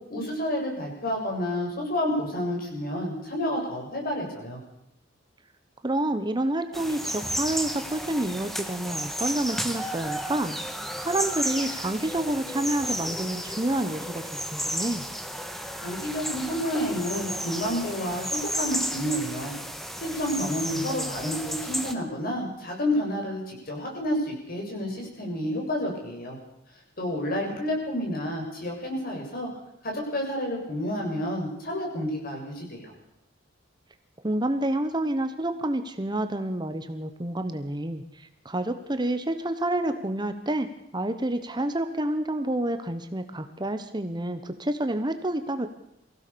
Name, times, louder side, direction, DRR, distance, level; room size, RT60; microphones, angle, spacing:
voice 1, 0.1-4.6 15.8-19.6 20.0-26.4 27.0-29.5 29.8-32.9, left 1 dB, 50° left, 0 dB, 7.2 m, -30 dB
voice 2, 5.8-10.6 11.0-14.2 14.5-15.0 20.4-21.1 34.2-40.7 40.9-45.7, right 1 dB, 25° right, 9 dB, 1.1 m, -29 dB
sound 1, 6.7-21.9, equal, ahead, 1.5 m, -33 dB
23.0 x 16.0 x 7.0 m, 0.83 s
head